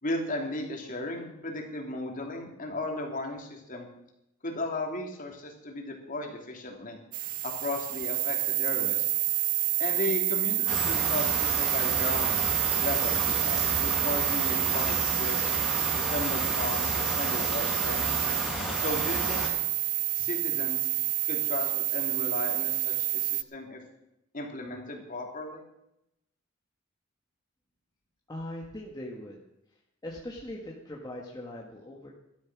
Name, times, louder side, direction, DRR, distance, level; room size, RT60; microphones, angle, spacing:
voice 1, 0.0-3.9 4.4-7.0 7.4-9.1 9.8-12.4 12.8-15.4 15.9-18.0 18.8-19.4 20.1-20.9 21.2-23.8 24.3-25.6, left 2 dB, 40° left, 2 dB, 2.9 m, -35 dB
sound 1, 7.1-23.4, right 13 dB, 40° right, 0.4 m, -28 dB
sound 2, 10.7-19.5, equal, 5° right, 4.4 m, -33 dB
voice 2, 28.3-29.4 30.0-32.1, left 1 dB, 20° left, -2 dB, 1.6 m, -40 dB
13.0 x 12.5 x 6.1 m, 0.84 s
head